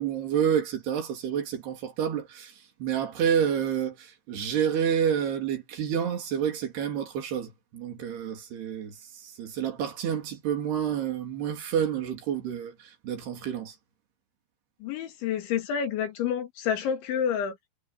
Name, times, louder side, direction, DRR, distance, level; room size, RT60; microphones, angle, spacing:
voice 1, 0.0-2.5 2.8-13.7, right 8 dB, 60° right, 5.0 m, -29 dB
voice 2, 14.8-17.6, left 8 dB, 80° left, 4.9 m, -29 dB
omnidirectional pair, 5.3 m